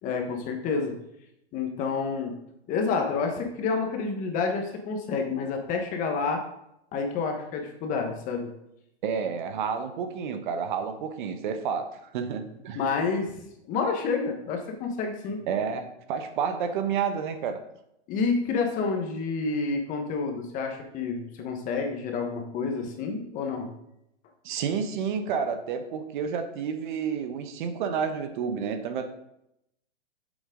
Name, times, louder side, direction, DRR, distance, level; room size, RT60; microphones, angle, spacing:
voice 1, 0.0-0.9 1.5-2.3 2.7-6.4 6.9-8.5 12.7-13.4 13.7-15.4 18.1-23.7, left 4 dB, 25° left, 3 dB, 1.2 m, -29 dB
voice 2, 9.0-12.8 15.5-17.6 24.4-29.1, right 6 dB, 45° right, 8 dB, 1.0 m, -30 dB
8.5 x 7.3 x 3.8 m, 0.79 s
hypercardioid pair, 150°, 33 cm